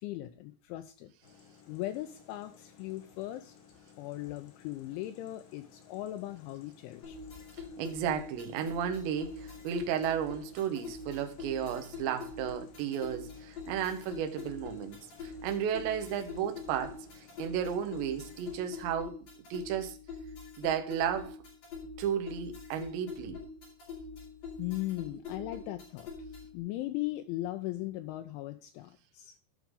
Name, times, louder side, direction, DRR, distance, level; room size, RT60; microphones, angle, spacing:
voice 1, 0.0-1.1 1.7-3.5 4.0-7.2 24.6-26.1 26.5-29.3, left 16 dB, 90° left, 2.7 m, -38 dB
sound 1, 1.2-18.9, left 7 dB, 70° left, 4.1 m, -59 dB
sound 2, 7.0-26.6, left 4 dB, 45° left, 5.1 m, -44 dB
voice 2, 7.8-17.0 17.4-19.2 19.5-20.0 20.6-21.4 22.0-23.4, right 8 dB, 70° right, 2.9 m, -33 dB
14.5 x 5.9 x 3.7 m
omnidirectional pair, 6.0 m